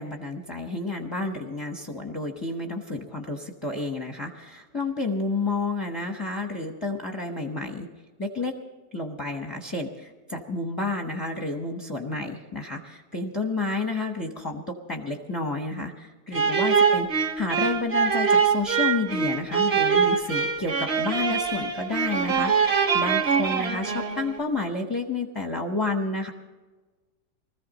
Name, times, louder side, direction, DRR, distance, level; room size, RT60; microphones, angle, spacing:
voice 1, 0.0-7.9 8.2-8.5 8.9-26.3, left 3 dB, 20° left, 2 dB, 0.6 m, -30 dB
sound 1, 16.3-24.4, right 6 dB, 40° right, 1.2 m, -23 dB
20.5 x 14.5 x 4.1 m, 1.3 s
omnidirectional pair, 1.8 m